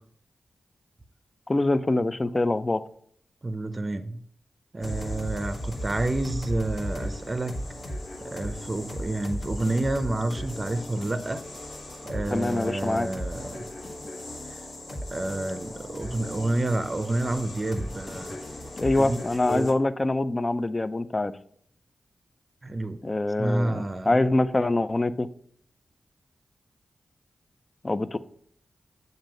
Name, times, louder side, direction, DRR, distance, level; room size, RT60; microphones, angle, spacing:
voice 1, 1.5-2.8 12.3-13.1 18.8-21.3 23.0-25.3 27.8-28.2, left 2 dB, 35° left, 13 dB, 0.4 m, -24 dB
voice 2, 3.4-4.2 4.7-7.6 8.2-11.5 12.0-13.7 14.5-14.6 14.9-18.4 18.9-19.7 22.6-23.0 23.4-24.2, right 2 dB, 40° right, 10 dB, 0.5 m, -29 dB
sound 1, 4.8-19.7, left 1 dB, 75° left, 1.4 m, -36 dB
7.3 x 2.7 x 5.1 m, 0.62 s
cardioid pair, 45°, 0 cm